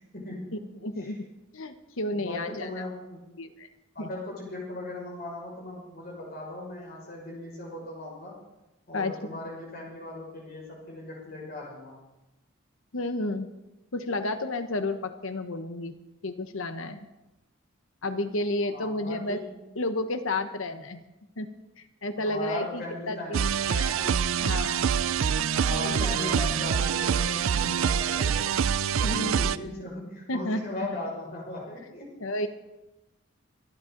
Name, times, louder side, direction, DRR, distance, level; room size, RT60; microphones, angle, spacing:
voice 1, 0.1-0.6 1.0-1.1 2.1-3.3 3.9-8.4 8.9-12.0 18.7-19.6 22.2-23.4 24.0-24.3 25.5-28.6 28.9-32.1, left 2 dB, 45° left, -3 dB, 6.0 m, -38 dB
voice 2, 0.8-1.3 1.5-2.7 3.4-3.7 4.0-4.1 8.9-9.4 12.9-13.5 13.9-15.9 16.2-17.0 18.0-19.4 19.8-21.0 21.4-21.5 21.8-24.9 29.0-29.5 30.3-30.6 32.2-32.5, left 2 dB, 70° left, 9 dB, 1.1 m, -31 dB
sound 1, 23.3-29.6, right 7 dB, 75° right, 0.5 m, -25 dB
24.0 x 12.0 x 3.9 m, 0.99 s
head